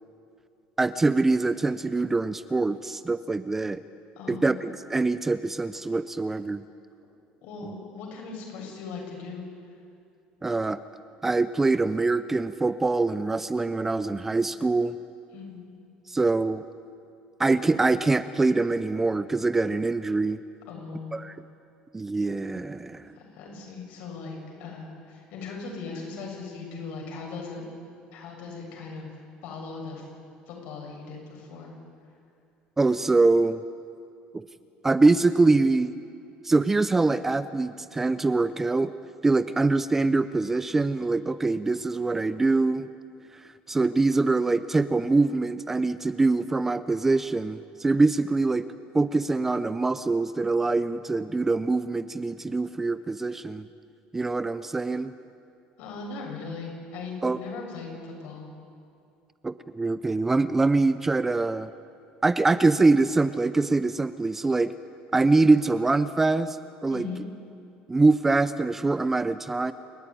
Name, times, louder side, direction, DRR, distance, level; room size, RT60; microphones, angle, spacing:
voice 1, 0.8-3.8 4.3-6.6 10.4-10.8 11.2-15.0 16.1-16.6 17.4-20.4 21.1-21.4 21.9-23.1 32.8-33.6 34.3-34.4 34.8-35.9 36.4-38.9 39.2-42.9 43.3-48.7 48.9-53.7 54.1-55.1 57.2-57.4 59.4-61.7 62.2-64.7 65.1-67.1 67.9-69.7, right 3 dB, 10° right, 13 dB, 0.5 m, -24 dB
voice 2, 4.2-4.5 7.4-9.8 15.3-15.7 20.7-21.2 23.1-27.6 28.1-29.1 29.4-30.1 30.5-31.7 55.8-58.5 66.9-67.2, left 4 dB, 65° left, 0 dB, 7.6 m, -39 dB
28.5 x 13.5 x 9.9 m, 2.5 s
cardioid pair, 170°, 3 cm